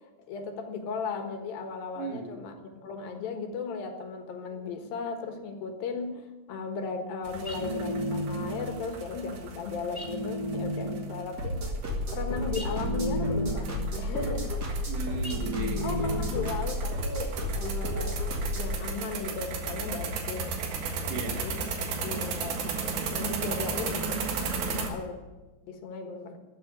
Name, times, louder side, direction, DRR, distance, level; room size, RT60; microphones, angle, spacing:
voice 1, 0.3-6.2 6.5-11.8 12.1-14.5 15.8-18.2 18.5-20.6 21.4-21.6 22.0-25.2 25.6-26.4, left 4 dB, 75° left, 5 dB, 3.2 m, -36 dB
voice 2, 2.0-2.3 14.9-16.3 21.1-21.5, right 4 dB, 65° right, 4 dB, 2.8 m, -36 dB
sound 1, 7.2-24.9, right 4 dB, 90° right, 3.5 m, -35 dB
sound 2, 7.4-8.8 9.9-11.3 12.5-13.9 15.2-16.6, equal, 20° left, 1.0 m, -33 dB
sound 3, 11.4-18.8, equal, 35° right, 2.1 m, -32 dB
13.5 x 7.8 x 9.4 m, 1.2 s
omnidirectional pair, 4.2 m